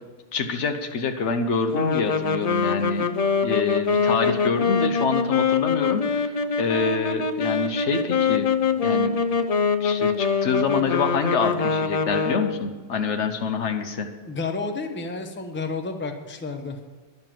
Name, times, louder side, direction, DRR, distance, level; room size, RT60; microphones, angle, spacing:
voice 1, 0.3-3.0 3.4-6.3 6.6-8.5 8.8-9.2 9.8-14.1, left 5 dB, 70° left, 6 dB, 1.2 m, -26 dB
sound 1, 1.7-12.7, left 5 dB, 50° left, 0.5 m, -24 dB
voice 2, 14.3-16.8, left 3 dB, 10° left, 5 dB, 0.7 m, -31 dB
10.5 x 6.7 x 7.6 m, 1.4 s
omnidirectional pair, 1.2 m